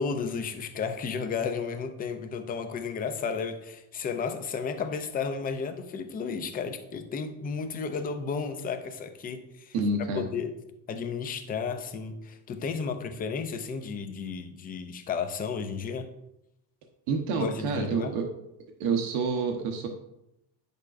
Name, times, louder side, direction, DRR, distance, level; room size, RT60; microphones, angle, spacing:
voice 1, 0.0-9.7 10.2-10.6 10.9-16.1 17.3-18.2, left 5 dB, 20° left, 7 dB, 0.3 m, -33 dB
voice 2, 9.7-10.3 17.1-18.2 18.8-19.9, right 4 dB, 85° right, 3 dB, 1.1 m, -28 dB
9.4 x 6.6 x 2.5 m, 0.86 s
cardioid pair, 160°, 48 cm